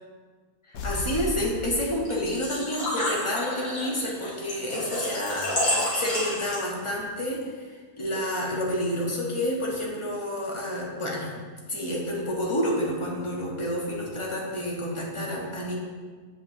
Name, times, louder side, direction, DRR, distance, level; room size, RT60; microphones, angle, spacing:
sound 1, 0.7-2.6, left 3 dB, 80° left, 1.3 m, -35 dB
voice 1, 0.7-7.7 8.0-11.3 11.7-15.7, left 1 dB, 25° left, -3 dB, 0.8 m, -29 dB
Engine / Trickle dribble / Fill (with liquid), 2.0-6.9, left 1 dB, 55° left, 2.2 m, -30 dB
7.9 x 5.1 x 2.7 m, 1.5 s
omnidirectional pair, 1.7 m